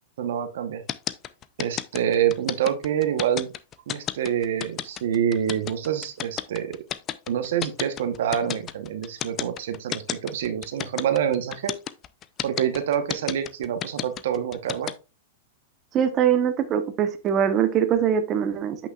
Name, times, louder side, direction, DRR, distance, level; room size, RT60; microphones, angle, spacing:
voice 1, 0.2-0.8 1.6-3.5 3.9-6.8 7.3-11.7 12.4-14.9, right 9 dB, 70° right, 9 dB, 1.0 m, -26 dB
sound 1, 0.9-14.9, left 11 dB, 30° left, 0.5 m, -31 dB
voice 2, 15.9-18.8, right 8 dB, 30° right, 8 dB, 1.0 m, -22 dB
8.2 x 6.2 x 2.4 m, 0.29 s
hypercardioid pair, 130°, 0 cm